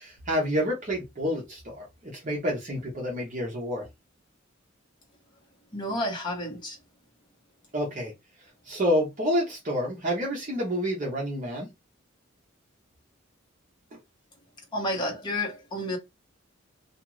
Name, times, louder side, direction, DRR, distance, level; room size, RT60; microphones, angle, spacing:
voice 1, 0.0-3.9 7.7-8.1 8.4-11.7 13.9-14.0, equal, 40° right, 0.8 m, -29 dB
voice 2, 5.7-6.8 14.7-16.0, left 1 dB, 25° left, 1.0 m, -30 dB
2.5 x 2.3 x 3.0 m
head